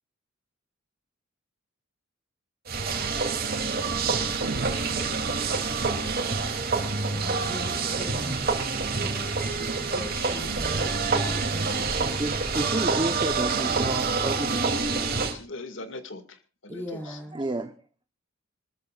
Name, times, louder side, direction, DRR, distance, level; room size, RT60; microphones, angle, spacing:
sound 1, 2.7-15.3, right 4 dB, 50° right, 3.0 m, -27 dB
sound 2, 4.4-6.0, right 3 dB, 85° right, 0.8 m, -39 dB
voice 1, 7.1-8.5 8.9-10.9 11.2-12.3 16.7-17.4, equal, 10° left, 5.0 m, -40 dB
voice 2, 9.9-10.9 12.3-12.4 15.3-17.2, left 2 dB, 65° left, 2.2 m, -42 dB
voice 3, 12.2-14.6 16.7-16.8 17.0-17.7, right 2 dB, 25° right, 1.0 m, -31 dB
27.0 x 14.0 x 2.5 m
head